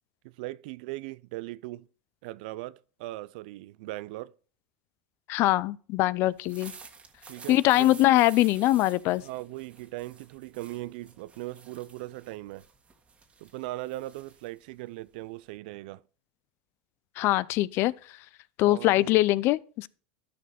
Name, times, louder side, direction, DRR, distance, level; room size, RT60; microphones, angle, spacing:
voice 1, 0.2-1.9 2.2-4.3 7.3-8.0 9.2-12.7 13.4-16.0 18.7-19.1, right 18 dB, 70° right, 0.4 m, -39 dB
voice 2, 5.3-6.7 7.5-9.2 17.2-17.9 18.6-19.9, left 17 dB, 50° left, 0.4 m, -23 dB
sound 1, 6.3-15.6, right 5 dB, 25° right, 1.7 m, -51 dB
13.0 x 5.1 x 4.2 m
hypercardioid pair, 105°, 5 cm